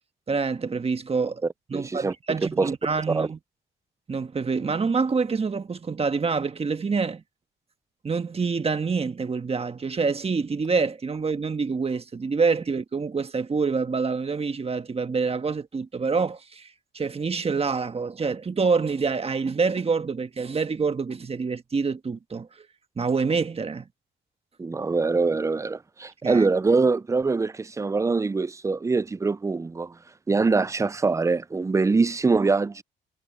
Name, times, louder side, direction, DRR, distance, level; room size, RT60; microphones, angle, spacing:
voice 1, 0.3-1.4 1.7-3.4 4.1-7.2 8.0-22.7 23.0-23.8 26.2-26.5, right 4 dB, 30° right, 1.4 m, -26 dB
voice 2, 1.7-2.1 2.6-2.7 3.1-3.3 24.6-29.9 30.3-32.8, right 4 dB, 15° right, 0.4 m, -23 dB
cardioid pair, 90°, 20 cm